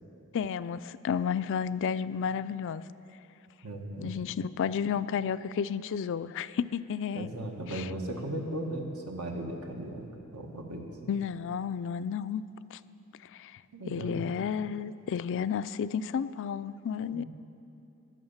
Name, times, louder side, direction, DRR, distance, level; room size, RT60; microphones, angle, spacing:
voice 1, 0.3-2.8 4.0-7.3 7.7-7.9 11.1-12.4 12.7-12.8 13.3-13.6 13.9-17.2, left 7 dB, 60° left, 14 dB, 0.3 m, -32 dB
voice 2, 3.6-4.2 7.1-10.1 10.3-10.9 13.7-14.3 17.1-17.3, right 1 dB, 80° right, 2 dB, 1.6 m, -37 dB
18.5 x 6.5 x 7.2 m, 2.8 s
head